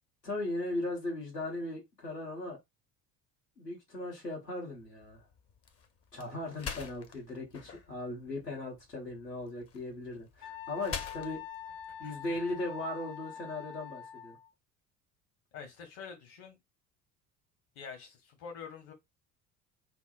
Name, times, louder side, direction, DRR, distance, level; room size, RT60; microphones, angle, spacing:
voice 1, 0.2-2.6 3.6-5.3 6.1-11.4 12.0-14.4, left 2 dB, 90° left, 1.4 m, -38 dB
sound 1, 4.7-13.0, left 6 dB, 30° left, 0.8 m, -46 dB
Wind instrument woodwind instrument, 10.4-14.5, left 8 dB, 70° left, 0.6 m, -45 dB
voice 2, 12.0-12.4 15.5-16.6 17.7-18.9, left 6 dB, 50° left, 1.2 m, -46 dB
5.8 x 2.1 x 2.5 m
figure-of-eight pair, 60°, 47 cm